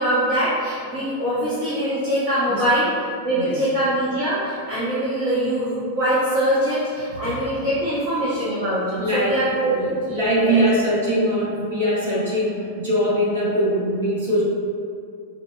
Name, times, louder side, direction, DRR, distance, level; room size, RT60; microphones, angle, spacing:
voice 1, 0.0-2.9 3.2-10.6, right 1 dB, 45° right, -11 dB, 0.8 m, -23 dB
voice 2, 9.0-9.4 9.7-14.4, equal, 65° right, -8 dB, 1.2 m, -22 dB
4.6 x 2.2 x 2.2 m, 2.3 s
figure-of-eight pair, 90°, 0 cm